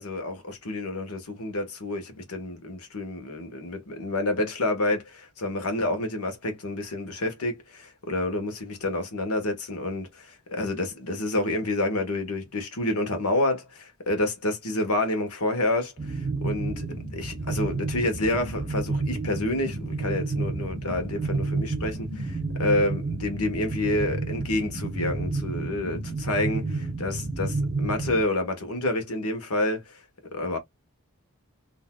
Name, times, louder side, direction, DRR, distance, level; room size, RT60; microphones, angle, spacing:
voice 1, 0.0-30.0 30.3-30.6, left 1 dB, 90° left, 1.3 m, -29 dB
sound 1, 16.0-28.2, right 3 dB, 20° right, 0.7 m, -30 dB
4.0 x 2.7 x 2.3 m
head